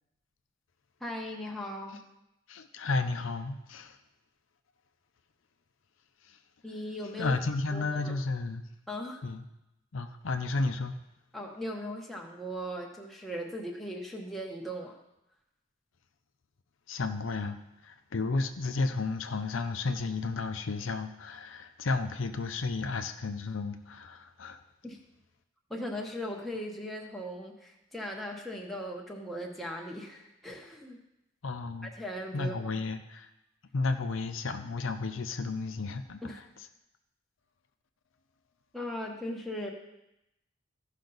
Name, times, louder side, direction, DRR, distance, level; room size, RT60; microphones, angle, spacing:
voice 1, 1.0-2.0 6.6-7.3 7.7-8.1 8.9-9.2 11.3-15.0 24.8-25.0 25.7-31.0 31.8-32.7 36.2-36.4 38.7-39.7, equal, ahead, -2 dB, 1.1 m, -38 dB
voice 2, 2.5-4.0 6.3-6.4 7.2-8.6 9.2-9.4 9.9-10.9 16.9-24.6 31.4-31.9 32.3-33.3 33.7-36.4, left 3 dB, 75° left, 7 dB, 0.6 m, -32 dB
15.0 x 5.6 x 4.0 m, 0.88 s
head